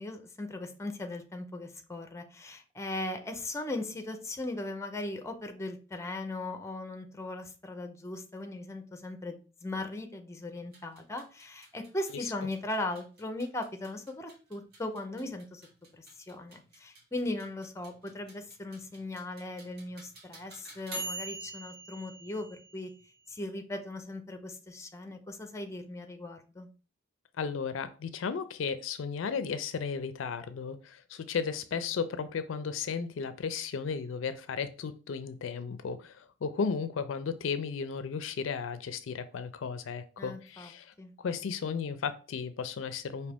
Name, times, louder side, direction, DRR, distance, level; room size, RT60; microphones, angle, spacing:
voice 1, 0.0-15.7 15.9-22.9 23.3-26.7 40.2-40.7 41.0-41.1, left 2 dB, 15° left, 6 dB, 0.5 m, -38 dB
sound 1, 10.6-23.4, right 2 dB, 50° right, 1.3 m, -46 dB
voice 2, 27.4-43.3, left 6 dB, 70° left, 12 dB, 0.4 m, -35 dB
5.0 x 2.7 x 3.4 m, 0.35 s
head